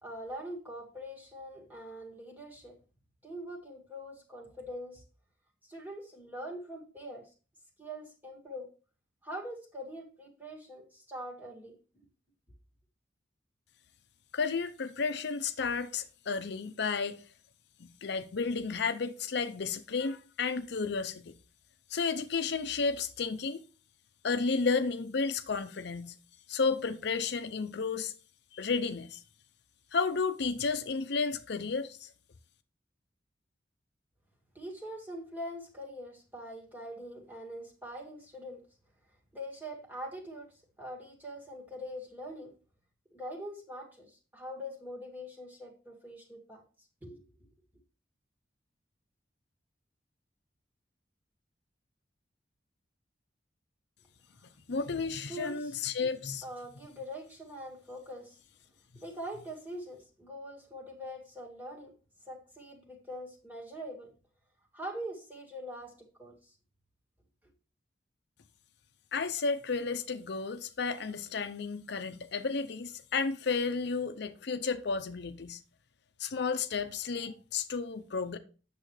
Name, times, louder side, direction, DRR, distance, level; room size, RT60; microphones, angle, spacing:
voice 1, 0.0-2.8 3.2-5.0 5.7-7.3 7.8-8.7 9.2-12.1 34.5-38.6 39.3-42.5 43.1-46.6 47.0-47.2 55.3-55.9 56.4-58.4 59.0-61.9 62.3-64.1 64.7-66.5, equal, 10° right, 2.1 m, -43 dB
voice 2, 14.3-17.2 17.8-21.3 21.9-23.6 24.2-26.1 26.5-28.1 28.5-29.2 29.9-32.1 54.7-56.4 69.1-75.6 76.2-78.4, left 4 dB, 65° left, 0.6 m, -32 dB
8.7 x 7.0 x 3.2 m
head